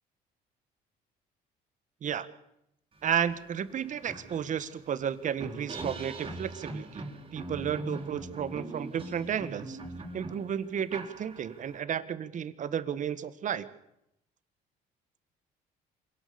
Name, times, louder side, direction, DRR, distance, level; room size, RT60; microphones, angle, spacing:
voice 1, 3.0-7.0 7.3-9.8 10.1-13.7, right 8 dB, 50° right, 13 dB, 1.7 m, -32 dB
sound 1, 3.3-3.4 3.7-11.8, right 2 dB, 30° right, 4.4 m, -41 dB
26.5 x 18.0 x 7.1 m, 0.81 s
cardioid pair, 110°, 17 cm